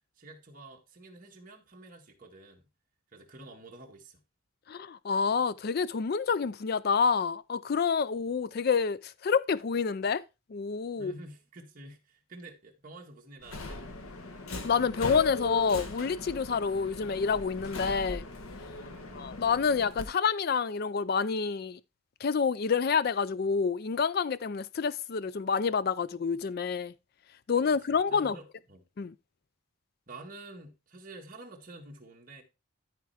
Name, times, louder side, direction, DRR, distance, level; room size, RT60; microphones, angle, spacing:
voice 1, 0.2-2.7 3.1-4.2 11.0-13.8 18.8-19.3 27.6-28.8 30.1-32.4, right 2 dB, 40° right, 1.7 m, -49 dB
voice 2, 4.7-10.2 10.5-11.1 14.6-18.2 19.1-21.8 22.2-26.9 27.5-28.4 29.0-29.1, left 5 dB, 45° left, 0.4 m, -28 dB
Subway metro underground, 13.4-20.0, left 2 dB, 85° left, 1.2 m, -39 dB
13.0 x 4.4 x 3.4 m
head